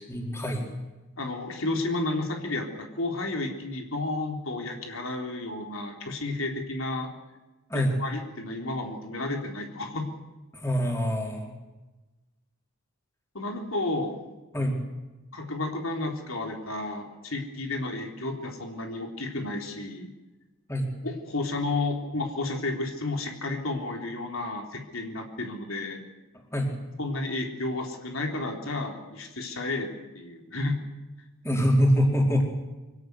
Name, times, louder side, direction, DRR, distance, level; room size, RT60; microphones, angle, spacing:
voice 1, 0.1-0.7 7.7-7.9 10.5-11.5 14.5-14.8 20.7-20.9 26.5-26.7 31.4-32.4, equal, 10° left, 0 dB, 4.5 m, -24 dB
voice 2, 1.2-7.1 7.7-10.1 13.3-14.2 15.3-20.1 21.0-26.0 27.0-29.9 30.1-30.8, left 2 dB, 70° left, 3 dB, 3.7 m, -32 dB
25.0 x 17.0 x 9.7 m, 1.1 s
head